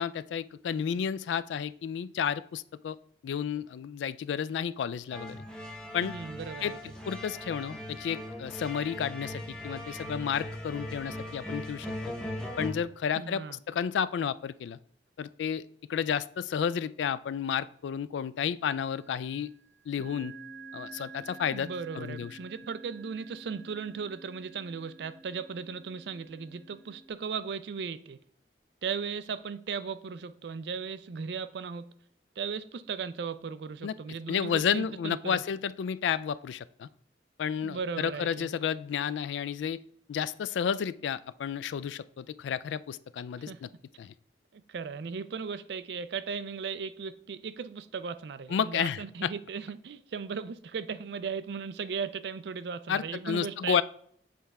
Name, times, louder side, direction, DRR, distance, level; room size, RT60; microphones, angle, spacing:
voice 1, 0.0-3.0 3.2-5.4 5.9-6.1 6.6-6.7 7.1-11.9 12.6-13.4 13.7-14.8 15.2-15.6 15.9-19.5 19.9-20.3 20.7-21.7 22.0-22.3 33.8-33.9 34.3-36.9 37.4-39.8 40.1-43.7 44.0-44.1 48.5-49.3 52.9-53.8, left 7 dB, 90° left, 0.3 m, -31 dB
sound 1, 5.1-12.7, left 1 dB, 5° left, 0.9 m, -39 dB
voice 2, 6.0-6.9 13.1-13.6 21.5-28.2 28.8-31.9 32.4-35.4 37.6-38.5 43.5-43.6 44.5-53.8, right 5 dB, 70° right, 0.4 m, -37 dB
sound 2, 18.6-19.1 19.9-27.1, right 3 dB, 70° left, 2.5 m, -49 dB
7.6 x 4.3 x 3.4 m
head